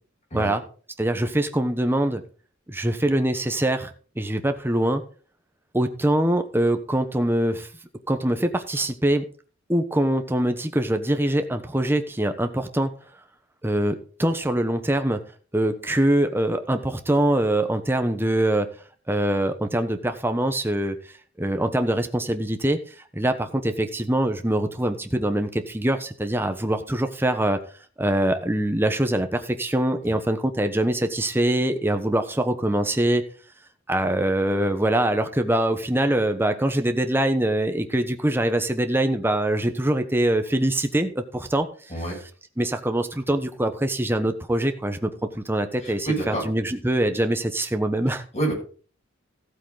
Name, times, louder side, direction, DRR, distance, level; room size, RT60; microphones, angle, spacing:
voice 1, 1.0-2.2 2.7-3.9 4.2-5.0 5.7-7.7 8.1-9.2 9.7-12.9 13.6-15.2 15.5-18.7 19.1-21.0 21.4-22.8 23.1-27.6 28.0-33.2 33.9-41.7 42.6-45.1 45.3-48.2, right 1 dB, 10° right, 7 dB, 1.0 m, -23 dB
voice 2, 45.8-46.4 48.3-48.5, right 2 dB, 35° left, -1 dB, 6.6 m, -27 dB
15.0 x 8.2 x 4.0 m, 0.41 s
head